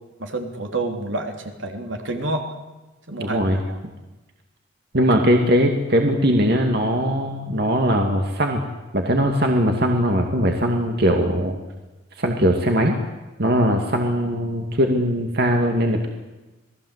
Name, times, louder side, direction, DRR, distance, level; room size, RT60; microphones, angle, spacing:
voice 1, 0.2-2.5 3.1-3.4 3.7-3.8 4.9-5.1, right 2 dB, 70° right, 4 dB, 3.4 m, -28 dB
voice 2, 3.2-3.6 4.9-8.6 8.9-11.6 12.2-12.9 13.4-16.1, equal, 55° right, 3 dB, 2.4 m, -20 dB
28.0 x 19.0 x 8.2 m, 1.1 s
head